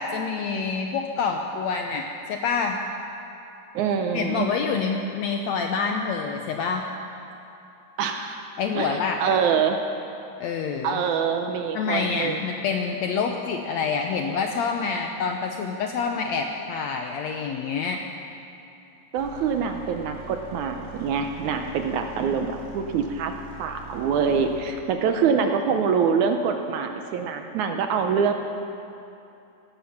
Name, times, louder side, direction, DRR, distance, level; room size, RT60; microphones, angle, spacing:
voice 1, 0.0-2.8 4.1-6.9 8.6-9.2 10.4-11.0 11.7-18.0, left 5 dB, 75° left, 3 dB, 1.6 m, -27 dB
voice 2, 3.7-4.5 8.0-9.8 10.8-12.4 19.1-23.3 23.6-28.3, right 6 dB, 75° right, 5 dB, 1.9 m, -25 dB
sound 1, 19.2-24.7, right 3 dB, 30° right, 4.3 m, -43 dB
17.5 x 14.0 x 5.8 m, 2.8 s
omnidirectional pair, 3.9 m